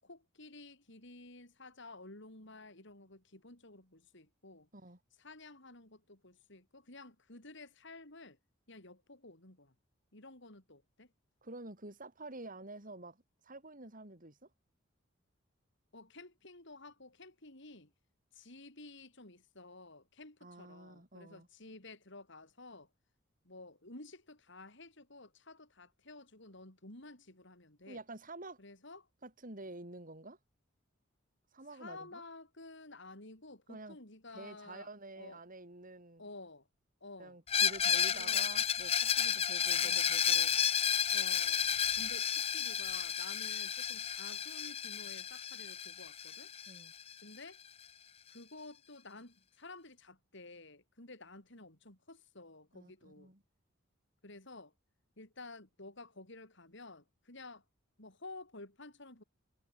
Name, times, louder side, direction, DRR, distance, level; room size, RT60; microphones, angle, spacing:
voice 1, 0.0-4.7 5.2-8.4 8.7-9.7 10.1-11.1 15.9-17.9 18.3-22.9 23.4-28.0 28.6-29.1 31.7-34.9 35.2-35.4 36.2-36.7 37.0-37.4 38.1-38.5 39.8-40.1 41.1-41.7 41.9-46.5 47.2-47.6 48.3-53.3 54.2-54.7 55.2-57.6 58.0-59.2, left 2 dB, 65° left, 6.5 m, -52 dB
voice 2, 11.4-13.2 13.4-14.4 20.4-21.5 27.9-28.6 29.2-30.4 31.5-32.2 33.7-34.0 34.3-36.2 37.2-40.6 46.7-46.9 52.7-53.4, right 2 dB, 45° right, 5.6 m, -49 dB
Screech, 37.5-47.1, left 8 dB, 30° left, 0.5 m, -32 dB
head